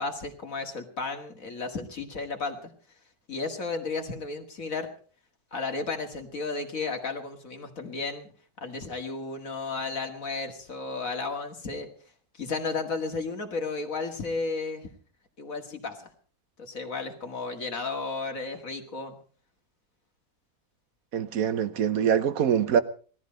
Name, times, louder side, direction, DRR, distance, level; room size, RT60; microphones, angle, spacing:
voice 1, 0.0-2.7 3.3-4.9 5.5-8.3 8.6-11.9 12.4-14.9 15.4-16.1 16.6-19.2, left 3 dB, 55° left, 2.4 m, -33 dB
voice 2, 21.1-22.8, right 8 dB, 60° right, 1.4 m, -24 dB
18.5 x 13.5 x 5.2 m
omnidirectional pair, 1.7 m